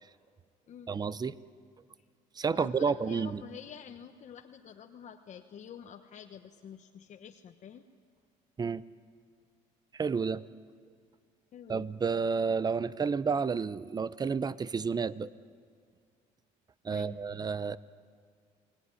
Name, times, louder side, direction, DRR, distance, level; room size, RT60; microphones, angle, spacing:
voice 1, 0.9-1.4 2.4-3.4 8.6-8.8 9.9-10.4 11.7-15.3 16.8-17.8, right 5 dB, 25° right, 17 dB, 0.7 m, -30 dB
voice 2, 2.5-7.9 11.5-11.9 16.9-17.2, left 8 dB, 50° left, 4 dB, 1.2 m, -48 dB
29.0 x 19.5 x 9.8 m, 2.1 s
cardioid pair, 100°, 16 cm